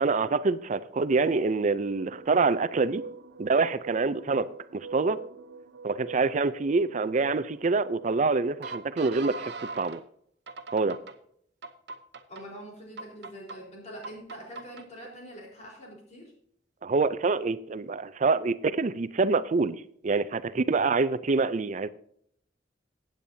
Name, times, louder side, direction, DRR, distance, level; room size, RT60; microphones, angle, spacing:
voice 1, 0.0-3.0 3.4-5.2 5.8-10.0 10.7-11.0 16.8-21.9, right 4 dB, 40° right, 0.5 m, -26 dB
sound 1, 1.1-10.0 10.5-11.1 11.6-12.4 13.0-13.6 14.0-14.8, right 4 dB, 65° right, 0.8 m, -42 dB
voice 2, 12.3-16.3, equal, 40° left, 4.1 m, -44 dB
15.5 x 9.1 x 2.7 m
head